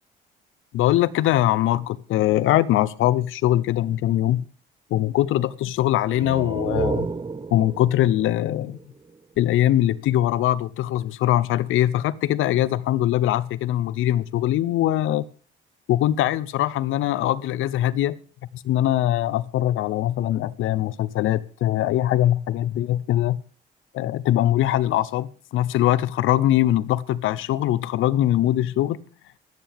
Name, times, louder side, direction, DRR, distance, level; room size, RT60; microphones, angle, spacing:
voice 1, 0.7-4.4 4.9-7.1 7.5-8.8 9.4-15.2 15.9-18.2 18.5-23.4 23.9-29.0, left 13 dB, 85° left, 0.7 m, -22 dB
sound 1, 6.0-9.6, right 4 dB, 25° right, 0.8 m, -31 dB
24.5 x 9.3 x 3.5 m
cardioid pair, 90°, 20 cm